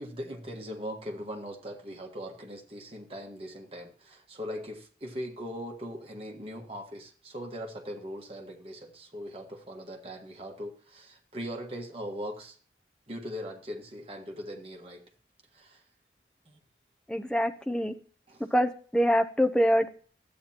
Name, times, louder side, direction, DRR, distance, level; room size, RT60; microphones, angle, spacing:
voice 1, 0.0-12.6 13.1-15.0 15.5-15.8 16.5-16.6 18.3-18.4, equal, 30° right, 1 dB, 1.5 m, -40 dB
voice 2, 17.1-17.9 18.5-19.9, equal, 5° left, 7 dB, 0.5 m, -25 dB
12.5 x 8.7 x 2.9 m, 0.44 s
head